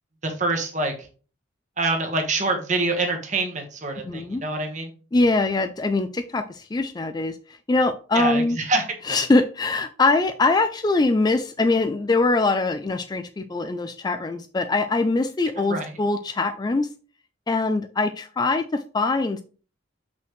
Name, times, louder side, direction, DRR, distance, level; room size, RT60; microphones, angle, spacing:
voice 1, 0.2-0.9 1.8-4.9 8.1-9.2 15.6-15.9, right 2 dB, 40° right, 3 dB, 1.3 m, -26 dB
voice 2, 4.1-4.4 5.1-8.6 9.0-16.9 17.5-19.4, left 3 dB, 20° left, 9 dB, 0.3 m, -23 dB
6.0 x 5.6 x 3.1 m, 0.38 s
head